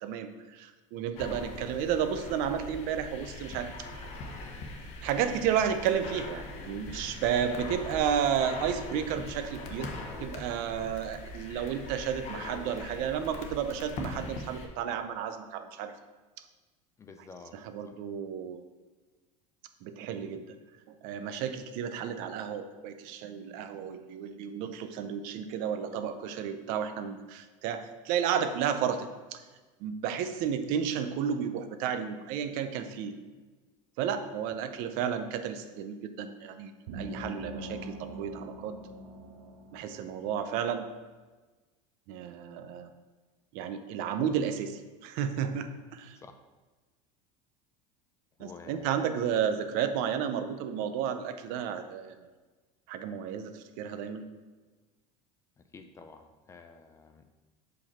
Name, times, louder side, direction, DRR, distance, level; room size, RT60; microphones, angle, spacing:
voice 1, 0.0-3.9 5.0-9.9 10.2-15.9 17.5-18.6 19.8-20.6 20.9-29.4 29.8-33.1 34.0-38.8 39.7-40.9 42.1-42.9 43.5-46.2 48.4-52.2 52.9-54.3, right 8 dB, 60° right, 9 dB, 0.6 m, -32 dB
sound 1, 1.2-14.7, left 2 dB, 45° left, 1.0 m, -41 dB
voice 2, 17.0-17.6 17.9-18.0 46.2-46.4 48.4-48.9 55.7-57.3, left 4 dB, 20° left, 7 dB, 0.4 m, -50 dB
sound 2, 36.9-40.4, right 1 dB, 80° right, 1.1 m, -43 dB
5.9 x 5.2 x 4.2 m, 1.3 s
supercardioid pair, 145°, 16 cm